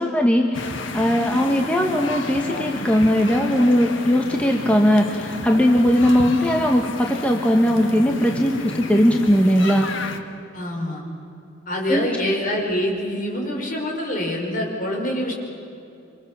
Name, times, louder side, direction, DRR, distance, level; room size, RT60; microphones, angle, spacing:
voice 1, 0.0-9.9 11.9-12.1, equal, 5° left, 2 dB, 1.3 m, -19 dB
sound 1, 0.5-10.2, left 2 dB, 70° left, 1.7 m, -31 dB
voice 2, 10.5-11.0 11.7-15.3, left 1 dB, 45° left, 0 dB, 5.1 m, -25 dB
27.0 x 25.5 x 7.4 m, 2.7 s
head